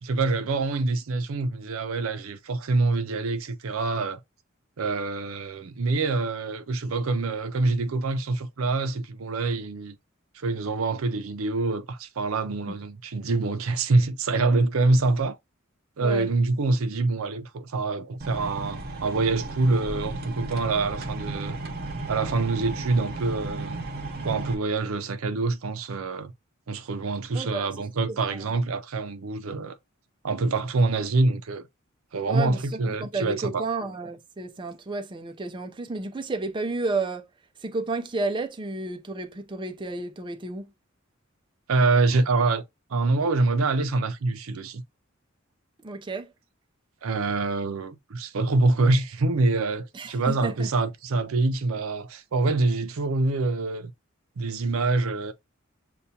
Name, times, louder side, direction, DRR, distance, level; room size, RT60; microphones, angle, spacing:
voice 1, 0.0-4.2 4.8-10.0 10.3-15.4 16.0-21.6 22.1-23.8 24.2-26.3 26.7-29.8 30.2-31.7 32.1-33.6 41.7-42.6 42.9-44.8 47.0-53.9 54.4-55.3, right 3 dB, 80° right, 0.5 m, -25 dB
sound 1, 18.2-24.5, right 2 dB, 50° right, 0.8 m, -34 dB
voice 2, 27.3-27.7 28.1-28.6 32.3-37.3 37.6-40.7 45.8-46.3 49.9-50.7, right 3 dB, 25° right, 0.5 m, -32 dB
6.8 x 2.3 x 2.7 m
head